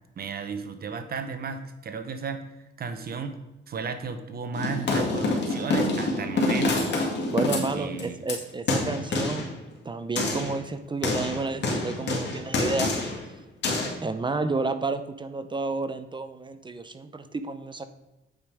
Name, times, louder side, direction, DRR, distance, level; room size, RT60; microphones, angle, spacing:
voice 1, 0.2-2.4 2.8-3.4 3.7-6.9 7.5-8.2, right 5 dB, 50° right, 9 dB, 0.9 m, -33 dB
sound 1, 4.5-8.4 8.7-9.5 10.2-10.6 11.0-13.2 13.6-13.9, left 3 dB, 60° left, 2.4 m, -26 dB
voice 2, 7.3-9.5 9.8-12.9 13.2-13.3 14.0-17.9, right 3 dB, 25° right, 11 dB, 0.6 m, -31 dB
8.8 x 5.3 x 4.8 m, 0.99 s
cardioid pair, 90°, 20 cm